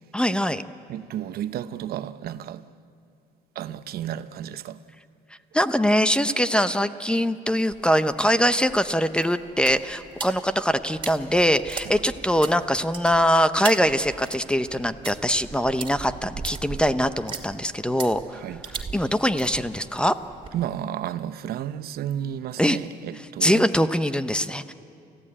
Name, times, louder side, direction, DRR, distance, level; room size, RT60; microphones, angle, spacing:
voice 1, 0.1-0.6 5.5-18.4 18.9-20.2 22.6-22.8 23.4-24.7, equal, 5° left, 0.7 m, -22 dB
voice 2, 0.9-2.6 3.5-4.8 18.4-18.6 20.5-23.7, right 10 dB, 65° right, 0.8 m, -32 dB
sound 1, 7.7-20.7, right 5 dB, 30° right, 2.3 m, -39 dB
29.5 x 15.5 x 8.7 m
cardioid pair, 110°, 17 cm